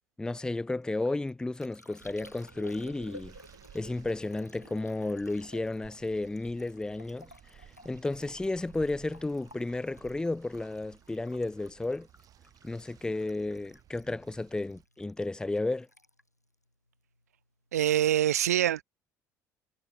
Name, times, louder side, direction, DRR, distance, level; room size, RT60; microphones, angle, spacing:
voice 1, 0.2-3.3 3.7-12.1 12.6-15.9, left 2 dB, 10° left, 0.6 m, -33 dB
Liquid, 0.8-17.4 17.7-18.2, left 1 dB, 90° left, 7.2 m, -56 dB
sound 1, 2.0-14.9, right 11 dB, 45° right, 2.3 m, -57 dB
voice 2, 17.7-18.8, right 11 dB, 75° right, 0.4 m, -25 dB
figure-of-eight pair, 55°, 9 cm